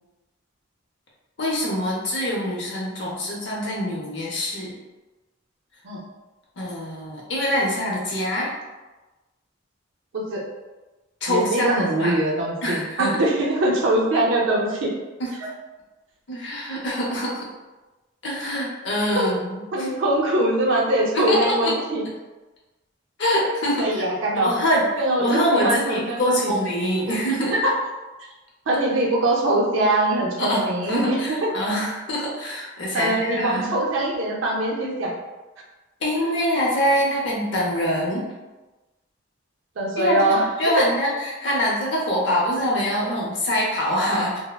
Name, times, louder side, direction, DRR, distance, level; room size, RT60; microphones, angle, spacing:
voice 1, 1.4-4.7 6.6-8.5 11.2-12.1 12.6-13.2 15.2-15.3 16.3-17.4 18.2-19.9 21.1-21.7 23.2-24.0 24.4-24.8 25.2-27.5 30.4-33.7 36.0-38.2 40.0-44.4, equal, 60° left, -4 dB, 0.6 m, -24 dB
voice 2, 11.3-14.9 19.1-19.3 19.7-22.0 23.8-24.5 25.0-26.5 27.1-27.2 27.5-27.7 28.7-31.5 32.9-35.1 36.2-36.3 39.8-40.5 41.6-41.7, right 1 dB, 70° right, -3 dB, 0.5 m, -22 dB
3.2 x 2.0 x 2.2 m, 1.1 s
head